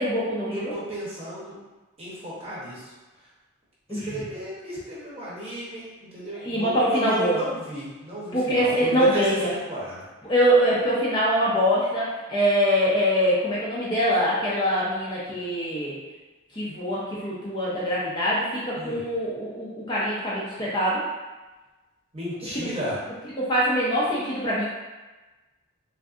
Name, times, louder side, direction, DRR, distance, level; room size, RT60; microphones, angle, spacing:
voice 1, 0.0-0.8 3.9-4.2 6.4-7.4 8.3-9.5 10.2-15.9 16.5-21.0 22.5-22.7 23.3-24.7, equal, 20° left, -8 dB, 0.5 m, -24 dB
voice 2, 0.5-1.5 2.0-2.9 3.9-9.2 9.7-10.0 18.8-19.0 22.1-23.0, equal, 25° right, -7 dB, 0.8 m, -34 dB
3.5 x 2.5 x 2.4 m, 1.2 s
head